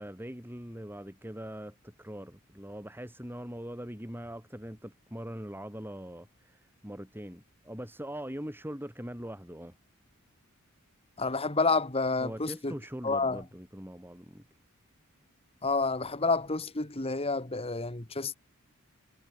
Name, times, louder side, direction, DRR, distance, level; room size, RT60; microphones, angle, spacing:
voice 1, 0.0-9.7 12.2-14.4, equal, 10° right, 7.5 m, -42 dB
voice 2, 11.2-12.8 13.0-13.4 15.6-18.3, left 3 dB, 25° left, 1.5 m, -29 dB
head